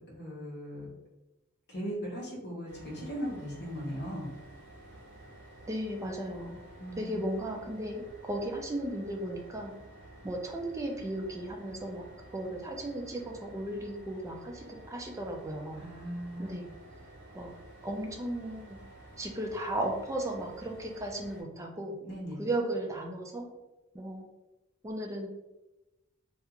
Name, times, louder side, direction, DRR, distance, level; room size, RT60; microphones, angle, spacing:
voice 1, 0.1-0.9 1.7-4.3 6.8-7.2 15.8-16.6 22.0-22.4, equal, 55° left, -4 dB, 0.9 m, -38 dB
sound 1, 2.7-21.4, right 1 dB, 55° right, 0.7 m, -52 dB
voice 2, 5.7-6.6 7.0-9.7 10.2-12.1 12.3-15.8 16.4-16.7 17.3-17.5 17.8-18.8 19.2-22.0 22.4-23.5 23.9-24.2 24.8-25.3, right 1 dB, 15° right, 1 dB, 0.3 m, -35 dB
2.4 x 2.3 x 2.8 m, 1.0 s
head